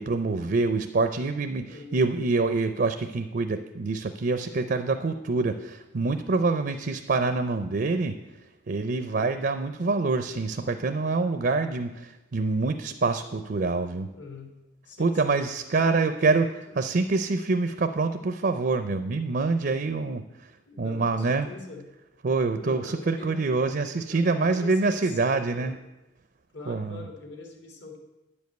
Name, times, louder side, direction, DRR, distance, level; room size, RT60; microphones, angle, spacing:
voice 1, 0.0-8.2 8.7-14.1 15.0-16.5 16.7-20.2 20.8-21.5 22.2-25.7 26.7-27.0, right 3 dB, 50° right, 9 dB, 0.5 m, -26 dB
voice 2, 1.6-2.0 14.1-14.5 14.8-15.4 15.8-17.0 20.6-21.8 22.6-23.4 24.1-25.8 26.5-28.0, left 3 dB, 65° left, 3 dB, 1.8 m, -43 dB
9.7 x 5.3 x 7.8 m, 0.99 s
head